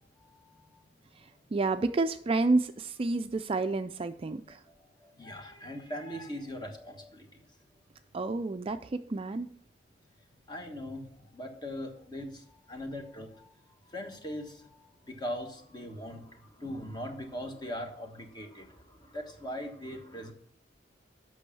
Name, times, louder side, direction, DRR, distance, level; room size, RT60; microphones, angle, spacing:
voice 1, 0.1-0.8 4.7-7.4 10.5-13.6 13.9-20.3, equal, 25° left, 4 dB, 1.3 m, -41 dB
voice 2, 1.5-4.6 8.1-9.5, right 3 dB, 30° right, 9 dB, 0.4 m, -29 dB
8.3 x 6.2 x 6.9 m, 0.62 s
head